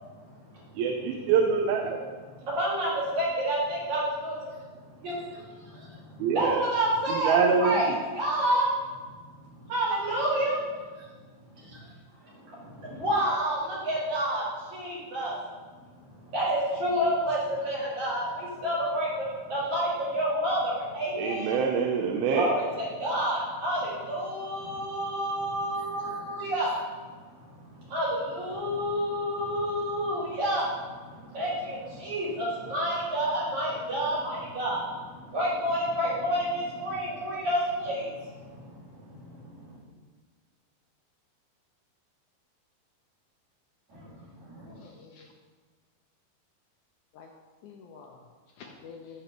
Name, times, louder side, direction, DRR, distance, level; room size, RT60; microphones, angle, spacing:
voice 1, 0.8-2.0 6.2-6.6 7.1-8.0 21.2-22.5, right 6 dB, 85° right, 3 dB, 2.5 m, -25 dB
voice 2, 2.4-4.5 5.0-8.7 9.5-10.6 11.0-11.1 11.5-11.8 12.2-15.4 16.3-21.6 22.3-26.8 27.0-27.1 27.5-39.8 43.9-44.8, right 1 dB, 55° right, -8 dB, 3.5 m, -29 dB
voice 3, 44.6-45.3 47.1-47.3 47.6-49.2, left 5 dB, 85° left, 1 dB, 1.7 m, -49 dB
14.5 x 5.9 x 3.0 m, 1.5 s
omnidirectional pair, 4.3 m